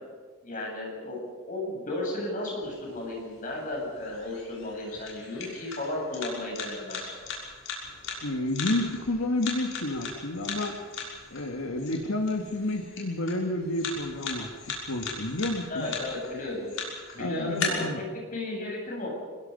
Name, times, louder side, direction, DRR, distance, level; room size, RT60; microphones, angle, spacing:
voice 1, 0.4-1.2 1.5-7.2 15.7-16.7 17.1-17.9 18.1-19.1, left 2 dB, 40° left, -1 dB, 7.6 m, -34 dB
sound 1, 2.6-17.6, left 5 dB, 70° left, 6.4 m, -39 dB
voice 2, 8.2-10.8 11.3-14.5 14.9-15.9 17.2-18.0, left 1 dB, 85° left, 4 dB, 1.8 m, -30 dB
25.5 x 21.5 x 5.4 m, 1.5 s
head